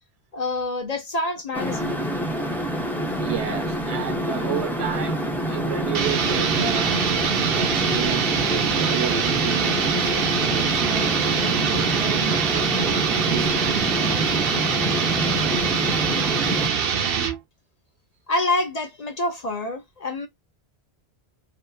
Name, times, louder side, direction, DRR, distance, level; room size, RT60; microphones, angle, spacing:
voice 1, 0.3-2.0 18.3-20.3, left 2 dB, 45° left, 0.6 m, -27 dB
sound 1, 1.5-16.7, equal, 5° left, 0.3 m, -27 dB
voice 2, 3.2-7.1 7.4-13.6 15.3-15.4, right 9 dB, 85° right, 1.1 m, -32 dB
sound 2, 5.9-17.4, right 7 dB, 65° right, 0.8 m, -24 dB
2.8 x 2.3 x 2.2 m
omnidirectional pair, 1.1 m